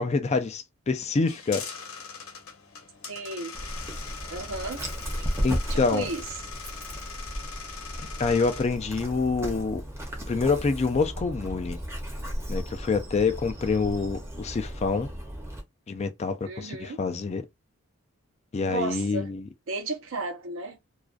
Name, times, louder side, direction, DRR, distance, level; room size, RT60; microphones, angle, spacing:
voice 1, 0.0-1.7 5.4-6.1 8.0-9.8 10.3-11.8 12.5-15.1 15.9-17.4 18.5-19.4, left 4 dB, 30° left, 0.3 m, -26 dB
sound 1, 1.3-8.6, left 5 dB, 75° left, 0.8 m, -41 dB
voice 2, 3.1-3.5 4.3-4.8 5.7-6.2 16.5-17.0 18.6-19.3 19.7-20.8, right 3 dB, 65° right, 0.6 m, -34 dB
Dog, 3.5-15.6, equal, 10° right, 0.6 m, -35 dB
2.4 x 2.2 x 2.4 m
head